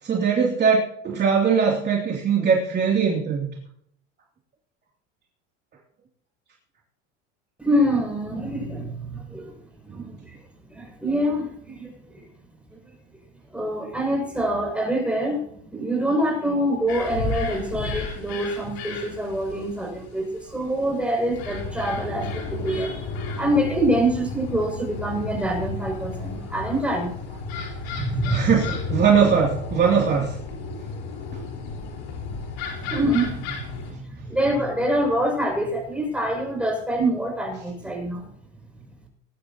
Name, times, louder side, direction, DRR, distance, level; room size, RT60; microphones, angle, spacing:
voice 1, 0.0-3.5 9.9-10.0 28.3-30.3, right 6 dB, 35° right, -2 dB, 3.0 m, -21 dB
voice 2, 7.6-9.5 9.9-10.4 10.7-12.3 13.5-15.4 15.7-27.1 28.0-28.5 32.8-38.3 38.7-38.8, right 1 dB, 5° right, 0 dB, 6.8 m, -25 dB
sound 1, 16.9-33.9, left 3 dB, 85° left, 4.6 m, -33 dB
21.0 x 11.5 x 3.0 m, 0.68 s
supercardioid pair, 110°, 30 cm